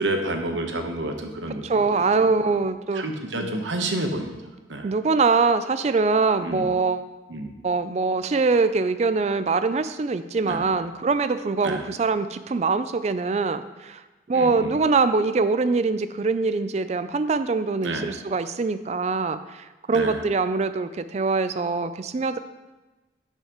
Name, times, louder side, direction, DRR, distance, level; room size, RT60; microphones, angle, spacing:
voice 1, 0.0-2.6 2.9-4.4 4.7-4.9 6.4-6.7 7.3-7.5 10.4-10.7 11.6-11.8 14.3-14.8 17.8-18.1 19.9-20.2, right 2 dB, 85° right, 4 dB, 1.0 m, -30 dB
voice 2, 1.6-3.0 3.4-3.6 4.8-7.1 7.6-14.0 14.3-22.4, right 4 dB, 35° right, 12 dB, 0.3 m, -23 dB
12.5 x 5.7 x 3.0 m, 1.2 s
head